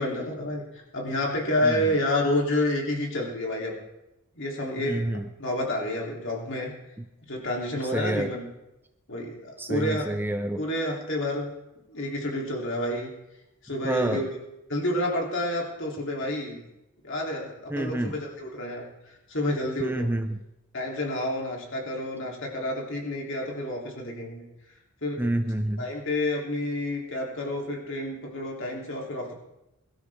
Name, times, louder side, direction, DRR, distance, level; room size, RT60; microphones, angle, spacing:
voice 1, 0.0-3.7 4.3-5.1 5.4-6.7 7.3-8.5 9.1-10.1 10.6-11.5 11.9-13.1 13.6-14.4 14.7-16.6 17.0-20.1 20.7-24.5 25.0-25.2 25.8-29.3, left 1 dB, 60° left, -1 dB, 3.4 m, -29 dB
voice 2, 4.8-5.3 7.9-8.3 9.6-10.6 13.8-14.2 17.7-18.1 19.8-20.4 25.2-25.9, right 1 dB, 10° right, 8 dB, 0.5 m, -28 dB
22.0 x 13.0 x 3.7 m, 0.92 s
head